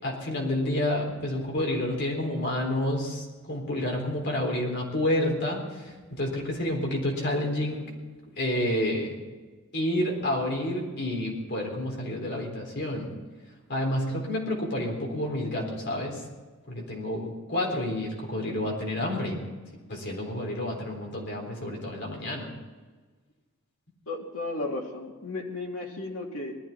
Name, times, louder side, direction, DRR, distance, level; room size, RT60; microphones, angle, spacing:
voice 1, 0.0-7.9 8.4-9.2 9.7-13.1 13.7-16.2 16.7-19.4 19.9-22.5, left 1 dB, 50° left, 0 dB, 4.0 m, -29 dB
voice 2, 24.1-26.6, left 2 dB, 75° left, -1 dB, 3.1 m, -34 dB
19.5 x 13.5 x 4.4 m, 1.3 s
head